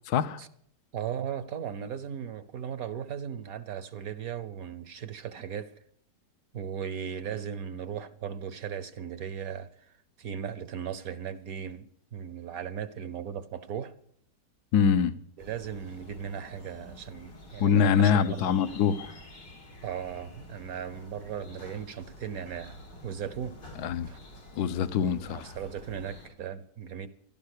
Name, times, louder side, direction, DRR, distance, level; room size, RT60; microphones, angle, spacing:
voice 1, 0.1-0.4 14.7-15.1 17.6-19.1 23.8-24.1 24.6-25.5, left 7 dB, 70° left, 1.3 m, -24 dB
voice 2, 0.9-5.7 6.5-9.9 10.2-11.9 12.1-13.9 15.4-18.5 19.8-22.8 23.0-23.6 24.1-24.2 25.0-27.1, right 8 dB, 60° right, 1.2 m, -37 dB
sound 1, 15.4-26.3, left 2 dB, 90° left, 4.2 m, -49 dB
16.0 x 12.5 x 6.6 m
omnidirectional pair, 1.8 m